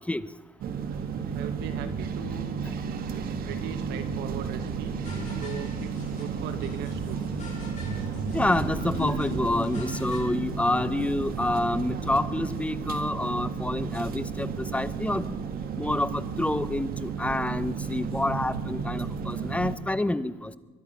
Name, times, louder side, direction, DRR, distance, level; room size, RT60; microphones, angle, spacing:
sound 1, 0.6-19.8, right 6 dB, 60° right, 1.7 m, -33 dB
voice 1, 1.3-2.5 3.1-5.0 5.4-7.2, right 9 dB, 85° right, 9 dB, 1.6 m, -39 dB
sound 2, 1.6-10.2, left 2 dB, 45° left, 6.7 m, -41 dB
sound 3, 2.8-19.3, left 6 dB, 70° left, 1.9 m, -48 dB
voice 2, 8.3-15.5 15.8-20.5, left 1 dB, 10° left, 16 dB, 0.7 m, -28 dB
22.0 x 11.5 x 5.7 m, 1.3 s
cardioid pair, 110°, 17 cm